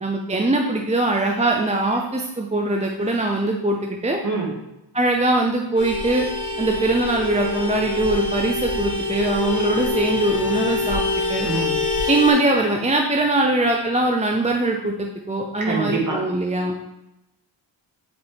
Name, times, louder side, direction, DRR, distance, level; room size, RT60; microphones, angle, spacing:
voice 1, 0.0-4.2 4.9-6.3 6.6-11.0 11.3-11.5 12.1-16.7, right 2 dB, 15° right, 1 dB, 0.6 m, -22 dB
Vehicle horn car horn honking, 5.7-12.3, left 3 dB, 65° left, 2.3 m, -25 dB
voice 2, 11.4-11.8 15.6-16.3, right 3 dB, 40° right, -1 dB, 2.0 m, -25 dB
7.9 x 4.3 x 3.5 m, 0.90 s
wide cardioid pair, 80°, 46 cm